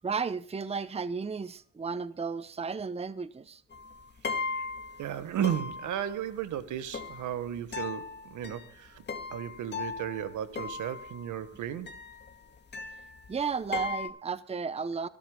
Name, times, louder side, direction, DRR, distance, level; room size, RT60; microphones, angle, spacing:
voice 1, 0.0-3.6 13.3-15.1, right 5 dB, 20° right, 0.8 m, -33 dB
sound 1, 3.7-5.2 5.4-6.3 6.9-11.5 11.9-13.4 13.7-14.1, left 4 dB, 35° left, 2.2 m, -38 dB
voice 2, 5.0-9.0 9.3-12.0, right 10 dB, 80° right, 1.6 m, -34 dB
25.5 x 13.0 x 2.3 m
cardioid pair, 90°, 30 cm